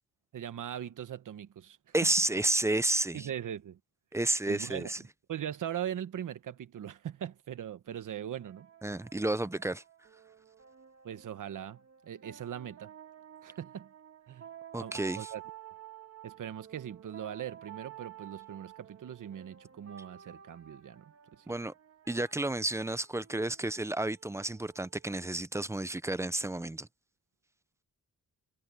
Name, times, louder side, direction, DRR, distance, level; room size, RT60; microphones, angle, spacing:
voice 1, 0.3-2.1 3.1-3.8 4.5-8.7 11.0-12.9 13.4-13.9 14.3-14.5 14.8-15.4 16.2-21.6, right 10 dB, 85° right, 1.3 m, -40 dB
voice 2, 1.9-3.3 4.1-5.0 8.8-9.8 14.7-15.3 21.5-21.7 22.1-26.9, right 2 dB, 10° right, 0.5 m, -31 dB
sound 1, 7.9-25.3, right 11 dB, 50° right, 1.8 m, -52 dB
wide cardioid pair, 165°, 30 cm